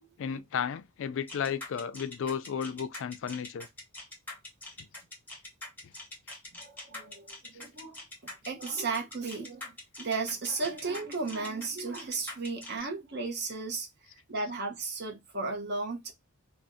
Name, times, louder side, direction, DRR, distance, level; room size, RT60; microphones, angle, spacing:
voice 1, 0.2-3.7, left 7 dB, 60° left, 0.3 m, -33 dB
sound 1, 1.3-12.8, left 2 dB, 10° left, 0.8 m, -44 dB
voice 2, 6.5-7.9 8.2-13.9 14.3-16.1, right 3 dB, 50° right, 0.7 m, -35 dB
2.6 x 2.1 x 3.4 m
head